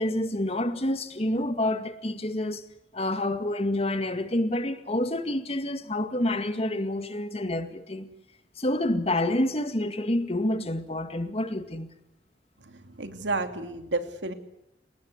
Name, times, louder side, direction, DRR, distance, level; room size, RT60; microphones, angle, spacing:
voice 1, 0.0-2.7 2.9-8.1 8.6-11.9, left 1 dB, 35° left, 2.1 m, -28 dB
voice 2, 12.6-14.3, right 3 dB, 90° right, 2.8 m, -31 dB
29.0 x 19.0 x 8.1 m
head